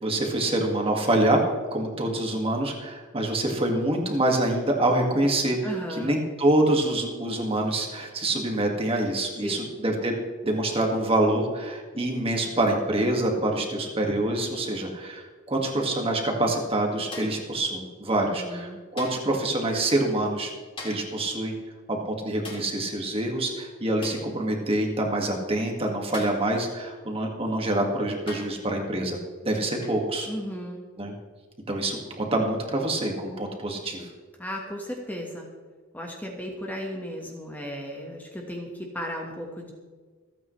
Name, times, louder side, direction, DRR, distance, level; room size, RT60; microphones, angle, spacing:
voice 1, 0.0-1.4 1.7-10.2 10.4-20.5 20.8-21.5 21.9-29.2 29.4-30.3 31.0-31.1 31.7-34.1, right 1 dB, 25° right, 1 dB, 1.9 m, -26 dB
voice 2, 5.6-6.2 9.4-9.7 18.2-18.8 30.3-30.8 34.4-35.5 35.9-39.7, equal, 10° left, 0 dB, 1.4 m, -35 dB
sound 1, 17.1-17.5 19.0-19.4 20.8-21.2 22.4-22.8 24.0-24.3 26.1-26.5 27.5-27.6 28.3-28.6 29.8-30.1 31.7-31.9, left 2 dB, 25° left, 2.8 m, -41 dB
27.0 x 9.0 x 3.2 m, 1.5 s
head